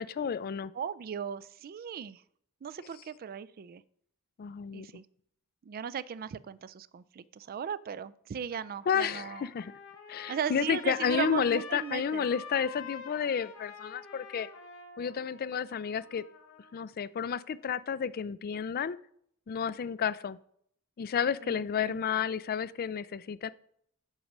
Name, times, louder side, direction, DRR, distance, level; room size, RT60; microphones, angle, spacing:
voice 1, 0.0-0.7 4.4-4.9 8.9-9.7 10.1-14.5 15.0-16.2 16.7-19.0 19.5-20.4 21.0-23.5, left 7 dB, 45° left, 18 dB, 0.4 m, -31 dB
voice 2, 0.7-2.2 2.6-3.8 4.7-5.1 5.6-9.5 10.3-12.3 21.4-22.0, right 8 dB, 45° right, 17 dB, 0.3 m, -37 dB
Trumpet, 8.3-16.8, left 6 dB, 80° left, 2.1 m, -47 dB
8.1 x 5.4 x 5.9 m, 0.67 s
head